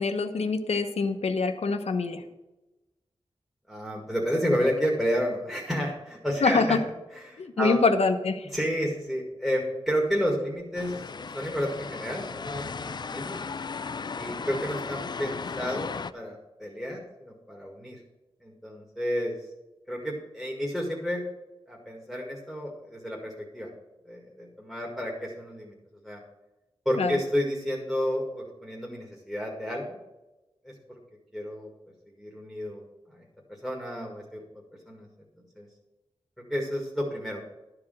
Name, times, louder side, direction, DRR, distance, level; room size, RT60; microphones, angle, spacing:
voice 1, 0.0-2.2 6.4-6.8 7.4-8.5 27.0-27.2, left 4 dB, 80° left, 7 dB, 0.9 m, -25 dB
voice 2, 3.7-6.8 7.1-7.8 8.5-13.4 14.2-18.0 18.4-19.3 19.9-21.2 21.7-23.7 24.1-25.7 26.0-26.2 26.9-30.0 30.6-31.0 31.3-31.7 32.2-34.4 34.9-35.1 35.6-35.7 36.5-37.5, equal, ahead, -2 dB, 1.8 m, -31 dB
sound 1, 10.7-16.1, left 5 dB, 45° left, 0.4 m, -36 dB
12.0 x 4.8 x 7.5 m, 1.0 s
wide cardioid pair, 105°, 11 cm